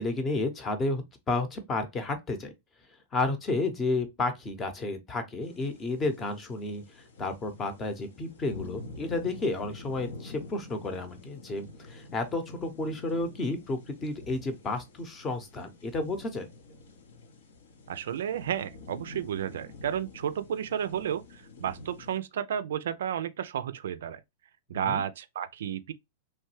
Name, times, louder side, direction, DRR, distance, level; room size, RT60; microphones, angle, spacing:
voice 1, 0.0-2.5 3.1-6.8 7.2-16.5 24.9-25.0, left 2 dB, 25° left, 0.7 m, -31 dB
sound 1, 5.4-22.2, left 2 dB, 75° left, 0.7 m, -47 dB
voice 2, 17.9-24.2 24.7-25.9, right 9 dB, 75° right, 0.3 m, -32 dB
3.0 x 2.2 x 3.1 m
hypercardioid pair, 110°, 0 cm